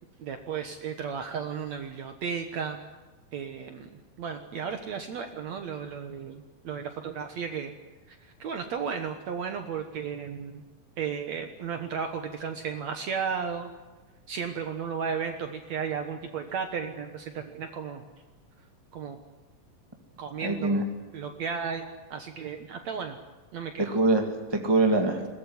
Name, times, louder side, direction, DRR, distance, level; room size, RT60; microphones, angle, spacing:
voice 1, 0.2-2.8 3.3-3.9 4.2-7.7 8.1-10.6 11.0-13.7 14.3-18.0 18.9-19.2 20.2-20.8 21.1-23.2 23.5-24.0, right 6 dB, 60° right, 6 dB, 2.3 m, -34 dB
voice 2, 20.4-20.8 23.9-25.3, right 2 dB, 10° right, 3 dB, 1.5 m, -24 dB
22.0 x 19.0 x 9.6 m, 1.2 s
omnidirectional pair, 3.8 m